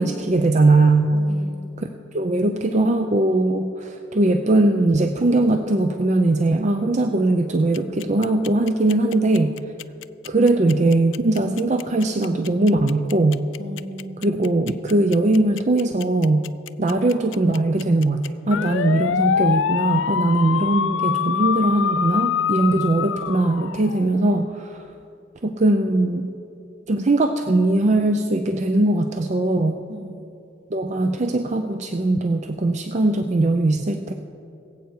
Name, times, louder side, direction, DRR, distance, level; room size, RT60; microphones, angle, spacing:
voice 1, 0.0-1.1 2.1-9.5 10.3-13.4 14.2-16.5 16.8-24.8 25.4-26.3 26.9-29.8 30.7-34.1, right 2 dB, 35° right, 6 dB, 0.5 m, -20 dB
voice 2, 1.1-1.7 13.6-14.3 29.9-30.2, equal, 65° right, 4 dB, 1.4 m, -37 dB
sound 1, 7.7-24.2, left 8 dB, 80° left, 0.4 m, -25 dB
21.5 x 8.1 x 4.5 m, 2.7 s
head